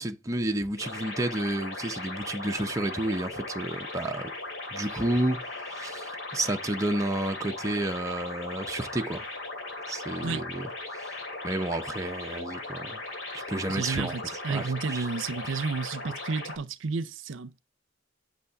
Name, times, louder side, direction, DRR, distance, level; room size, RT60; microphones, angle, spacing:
voice 1, 0.0-4.3 4.7-5.4 5.7-9.3 9.9-11.1 11.4-13.0 13.5-14.1 14.5-15.1 15.4-15.6, right 1 dB, 15° right, 0.7 m, -31 dB
sound 1, 0.8-16.6, left 2 dB, 80° left, 3.1 m, -38 dB
voice 2, 13.7-17.5, right 4 dB, 70° right, 0.6 m, -31 dB
8.4 x 6.3 x 3.5 m
head